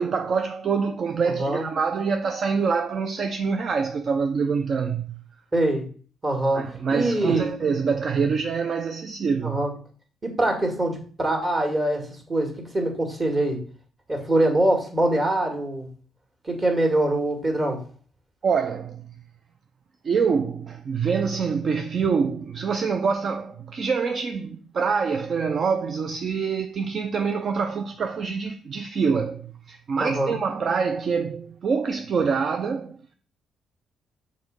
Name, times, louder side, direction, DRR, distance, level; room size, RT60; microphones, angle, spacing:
voice 1, 0.0-5.2 6.5-9.6 18.4-19.1 20.0-33.1, right 5 dB, 50° right, 0.5 m, -25 dB
voice 2, 1.3-1.6 5.5-5.8 6.2-7.5 9.4-9.7 10.2-13.6 14.1-15.9 16.4-17.8 30.0-30.4, right 1 dB, 30° right, 2.0 m, -24 dB
6.0 x 3.2 x 5.1 m
cardioid pair, 90°, 0 cm